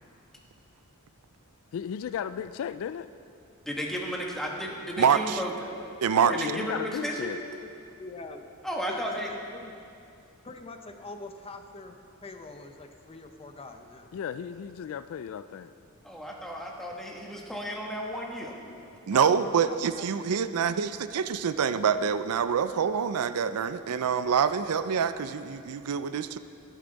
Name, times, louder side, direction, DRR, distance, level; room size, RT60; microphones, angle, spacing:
voice 1, 1.7-3.1 6.1-7.4 14.1-15.7 19.1-19.4, left 8 dB, 65° left, 14 dB, 0.3 m, -35 dB
voice 2, 3.6-5.7 6.3-7.3 7.6-7.7 8.6-9.3 16.0-18.6, equal, ahead, -1 dB, 1.3 m, -34 dB
voice 3, 5.0-5.4 6.0-6.3 19.1-26.4, right 7 dB, 75° right, 12 dB, 0.4 m, -26 dB
voice 4, 8.0-8.5 8.9-9.7 10.4-14.1 18.7-18.8 19.7-20.3, left 3 dB, 25° left, 6 dB, 0.6 m, -44 dB
11.5 x 11.0 x 4.0 m, 2.5 s
head